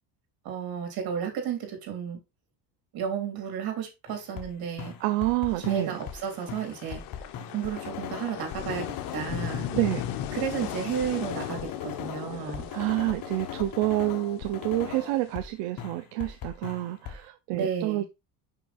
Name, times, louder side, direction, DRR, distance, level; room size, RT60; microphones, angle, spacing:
voice 1, 0.4-2.2 2.9-4.9 5.6-7.0 7.5-9.7 10.3-12.7 17.5-18.1, right 8 dB, 55° right, 3.5 m, -32 dB
sound 1, 4.1-4.5 4.8-6.2 6.5-15.5 15.8-17.2, left 9 dB, 50° left, 1.4 m, -38 dB
voice 2, 5.0-5.9 9.7-10.0 12.4-18.1, right 17 dB, 80° right, 0.8 m, -28 dB
sound 2, 5.5-15.3, left 12 dB, 65° left, 1.1 m, -40 dB
6.0 x 5.9 x 4.2 m
cardioid pair, 140°, 43 cm